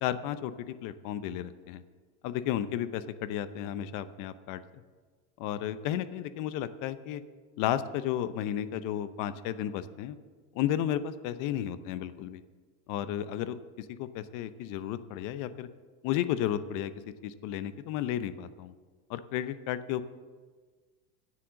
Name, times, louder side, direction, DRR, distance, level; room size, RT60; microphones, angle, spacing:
voice 1, 0.0-1.8 2.2-4.6 5.4-7.2 7.6-10.2 10.5-12.4 12.9-15.7 16.0-16.9 17.2-18.7 19.1-20.0, left 11 dB, 55° left, 13 dB, 0.8 m, -33 dB
10.0 x 7.5 x 7.5 m, 1.5 s
supercardioid pair, 130°, 38 cm